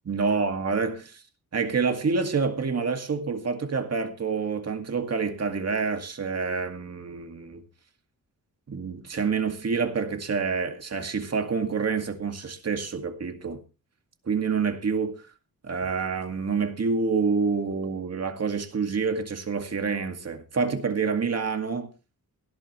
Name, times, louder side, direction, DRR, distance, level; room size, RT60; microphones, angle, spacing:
voice 1, 0.1-1.2 1.5-7.6 8.7-13.6 14.3-15.2 15.6-21.9, right 5 dB, 45° right, 2.1 m, -27 dB
17.5 x 11.5 x 3.1 m
wide cardioid pair, 130°, 35 cm